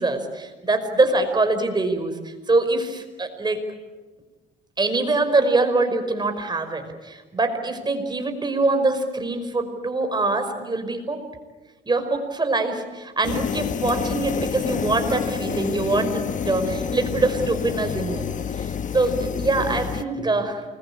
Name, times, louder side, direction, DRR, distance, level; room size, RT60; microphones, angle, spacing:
voice 1, 0.0-3.6 4.8-11.2 11.9-20.6, right 2 dB, 25° right, 7 dB, 5.4 m, -24 dB
sound 1, 13.2-20.0, left 7 dB, 45° left, 1.2 m, -28 dB
28.5 x 22.0 x 8.8 m, 1.3 s
cardioid pair, 85°, 18 cm